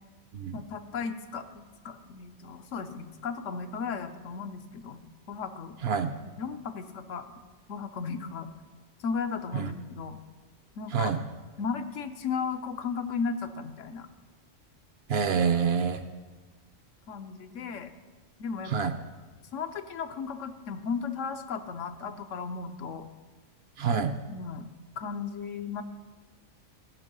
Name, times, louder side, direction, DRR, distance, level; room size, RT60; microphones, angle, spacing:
voice 1, 0.5-5.8 6.4-7.3 7.7-8.5 9.0-10.2 10.8-11.1 11.6-14.1 17.1-17.9 18.4-18.9 19.5-23.1 24.3-24.7 25.0-25.8, left 5 dB, 80° left, 8 dB, 1.1 m, -35 dB
voice 2, 15.1-16.0 18.7-18.9 23.8-24.1, right 6 dB, 65° right, 9 dB, 0.7 m, -26 dB
15.0 x 5.3 x 5.4 m, 1.3 s
omnidirectional pair, 1.3 m